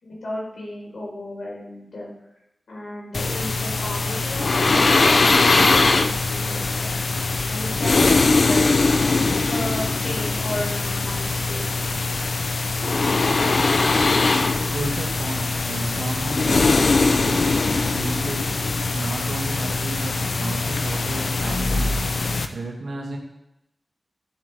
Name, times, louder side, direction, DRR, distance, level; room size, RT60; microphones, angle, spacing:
voice 1, 0.0-2.1 2.7-4.4 4.7-6.9 7.5-8.1 8.5-8.7 9.5-11.8, left 1 dB, 90° left, -4 dB, 4.4 m, -33 dB
sound 1, 3.1-22.5, left 3 dB, 60° left, 0.6 m, -21 dB
voice 2, 13.8-23.2, right 2 dB, 80° right, -1 dB, 2.2 m, -33 dB
12.5 x 7.8 x 3.5 m, 0.88 s
wide cardioid pair, 105°, 0 cm